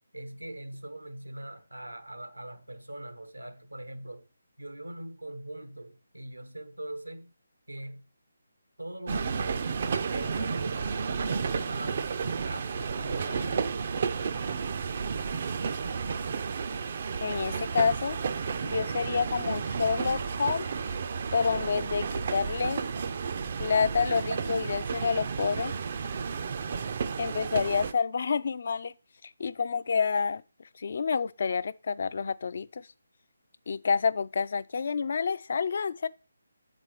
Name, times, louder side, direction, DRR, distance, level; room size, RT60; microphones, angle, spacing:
voice 1, 0.1-4.3 4.6-7.3 7.7-8.1 8.8-9.7 10.1-13.7, right 1 dB, 85° right, 0.9 m, -41 dB
sound 1, 9.1-27.9, right 5 dB, 40° right, 0.4 m, -32 dB
voice 2, 17.2-18.2 18.6-20.7 21.3-22.8 23.6-25.7 27.2-28.9 29.4-30.4 30.8-32.8 33.7-36.1, left 5 dB, 45° left, 0.3 m, -28 dB
8.0 x 4.2 x 4.7 m
figure-of-eight pair, 150°, 0 cm